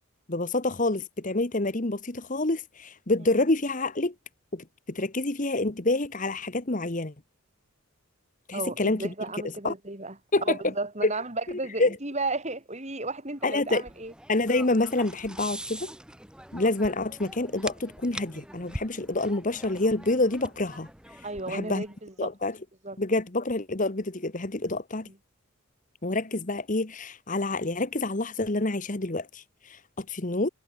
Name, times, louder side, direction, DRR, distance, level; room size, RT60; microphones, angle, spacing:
voice 1, 0.3-4.1 4.5-7.1 8.5-9.1 9.6-9.7 10.3-10.6 11.0-11.1 11.5-12.0 13.4-13.8 14.3-15.9 16.5-20.9 21.5-21.8 22.2-22.6 23.0-25.1 26.0-30.5, left 2 dB, 35° left, 1.2 m, -27 dB
voice 2, 8.5-10.2 10.5-14.1 21.2-22.3 22.8-23.0, right 2 dB, 30° right, 3.5 m, -33 dB
sound 1, 13.4-21.9, right 1 dB, 5° right, 1.1 m, -43 dB
head